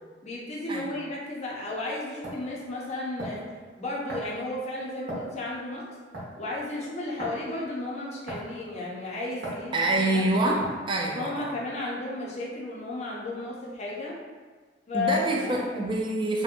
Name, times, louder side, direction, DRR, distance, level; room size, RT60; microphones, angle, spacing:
voice 1, 0.2-3.5 3.8-5.8 6.4-10.5 11.1-14.2 14.9-15.8, left 2 dB, 40° left, -4 dB, 0.5 m, -33 dB
sound 1, 1.5-1.6 2.2-2.4 3.2-3.5 4.1-4.4 5.1-5.4 6.1-6.4 7.2-7.4 8.3-8.6 9.4-9.6 10.6-10.9, right 1 dB, 70° right, 0.8 m, -36 dB
voice 2, 9.7-11.5 14.9-16.4, right 2 dB, 25° right, -1 dB, 0.3 m, -26 dB
2.6 x 2.1 x 2.5 m, 1.4 s
head